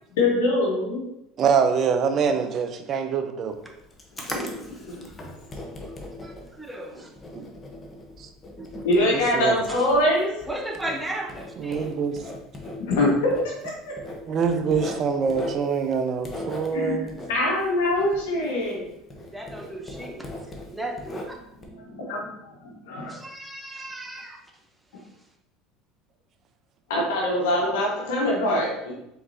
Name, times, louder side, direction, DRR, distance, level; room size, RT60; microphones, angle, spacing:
voice 1, 0.2-1.1 4.3-4.5 4.8-5.1 8.8-10.3 12.9-13.3 13.6-14.3 16.7-18.9 21.7-22.3 22.6-23.1 26.9-28.9, left 1 dB, 80° left, -2 dB, 1.2 m, -24 dB
voice 2, 1.4-3.6 7.3-7.5 8.2-8.3 9.1-9.6 11.6-12.2 14.3-17.1, right 6 dB, 45° right, 7 dB, 0.6 m, -24 dB
Writing, 3.5-18.8 19.1-21.6, left 2 dB, 25° left, 1.0 m, -39 dB
voice 3, 4.2-4.5 6.2-7.1 8.6-8.8 9.7-9.8 10.5-11.9 19.3-20.3 20.7-21.4 23.1-24.4, right 1 dB, 10° right, 2 dB, 0.8 m, -35 dB
4.5 x 3.8 x 2.8 m, 0.82 s
hypercardioid pair, 85°, 0 cm